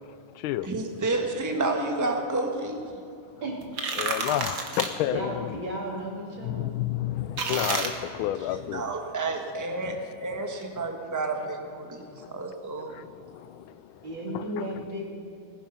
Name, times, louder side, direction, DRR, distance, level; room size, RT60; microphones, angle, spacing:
voice 1, 0.1-0.7 4.0-5.6 6.4-8.9 9.8-10.0 12.2-12.4 12.9-14.1 14.3-14.8, left 13 dB, 90° left, 1.4 m, -31 dB
voice 2, 0.6-2.8 8.7-13.0, right 2 dB, 10° right, 1.1 m, -30 dB
sound 1, 3.6-4.9 7.4-7.9, right 4 dB, 45° right, 1.6 m, -29 dB
voice 3, 5.1-6.7 9.6-10.0 14.0-15.1, right 1 dB, 70° right, 3.5 m, -34 dB
19.5 x 10.5 x 5.6 m
omnidirectional pair, 2.2 m